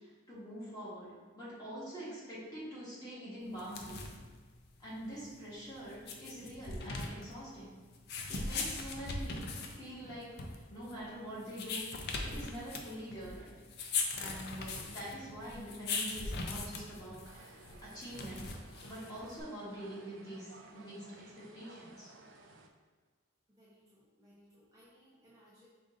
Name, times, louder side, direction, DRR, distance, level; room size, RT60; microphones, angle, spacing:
voice 1, 0.3-1.1 1.4-4.0 4.8-7.7 8.3-9.4 9.8-11.9 12.2-13.5 14.1-18.5 18.9-22.1, equal, 20° left, -9 dB, 1.5 m, -45 dB
sound 1, 3.5-19.4, left 3 dB, 50° left, 0.5 m, -40 dB
sound 2, 17.2-22.7, right 3 dB, 65° right, 0.4 m, -57 dB
voice 2, 23.6-25.7, equal, 15° right, -9 dB, 0.7 m, -63 dB
5.0 x 2.5 x 3.8 m, 1.4 s
head